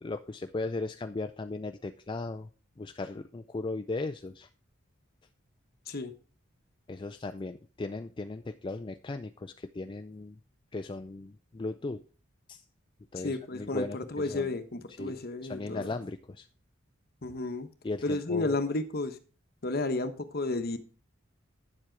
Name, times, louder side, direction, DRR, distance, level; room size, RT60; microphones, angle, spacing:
voice 1, 0.0-2.5 2.8-4.5 6.9-10.4 10.7-12.0 12.5-12.6 13.1-14.5 15.0-16.5 17.8-18.6, left 3 dB, 25° left, 0.4 m, -37 dB
voice 2, 13.2-15.9 17.2-17.7 18.0-19.2 19.6-20.8, left 2 dB, 50° left, 1.1 m, -32 dB
9.8 x 7.4 x 4.6 m
head